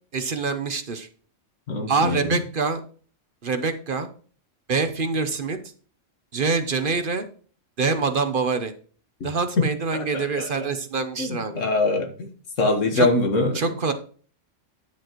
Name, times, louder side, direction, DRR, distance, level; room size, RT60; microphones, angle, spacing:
voice 1, 0.1-1.1 1.9-2.8 3.4-4.1 4.7-5.6 6.3-7.3 7.8-8.7 9.2-11.6 12.9-13.1 13.5-13.9, right 4 dB, 50° right, 9 dB, 0.9 m, -25 dB
voice 2, 1.7-2.3 9.9-10.5 11.2-12.3 12.6-13.5, left 2 dB, 80° left, 5 dB, 1.8 m, -23 dB
10.5 x 7.5 x 3.0 m, 0.42 s
omnidirectional pair, 1.3 m